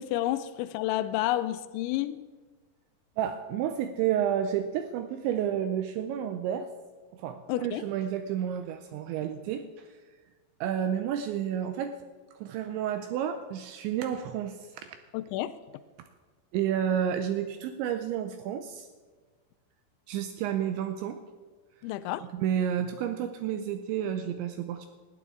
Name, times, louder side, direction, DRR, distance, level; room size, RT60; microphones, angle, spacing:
voice 1, 0.0-2.2 7.5-7.8 15.1-15.6 21.8-22.3, left 14 dB, 90° left, 2.6 m, -30 dB
voice 2, 3.2-6.7 7.1-9.9 10.6-11.9 12.4-15.0 16.5-18.9 20.1-21.2 22.2-24.9, right 9 dB, 80° right, 2.7 m, -30 dB
19.5 x 12.5 x 3.7 m
omnidirectional pair, 5.8 m